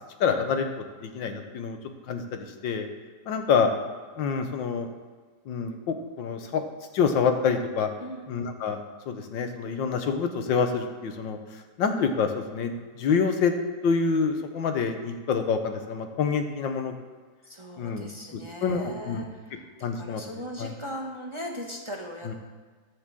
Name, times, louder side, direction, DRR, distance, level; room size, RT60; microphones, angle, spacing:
voice 1, 0.2-0.7 1.0-1.8 2.1-2.9 3.3-3.7 4.2-4.9 5.5-6.6 6.9-7.9 8.3-11.4 11.8-12.7 13.0-13.5 13.8-16.9 17.8-18.1 18.6-19.2 19.8-20.2 20.6-20.7 22.3-22.4, left 5 dB, 90° left, 6 dB, 1.7 m, -26 dB
voice 2, 17.4-22.3, equal, 20° right, 0 dB, 1.0 m, -39 dB
13.5 x 5.0 x 7.5 m, 1.5 s
omnidirectional pair, 1.9 m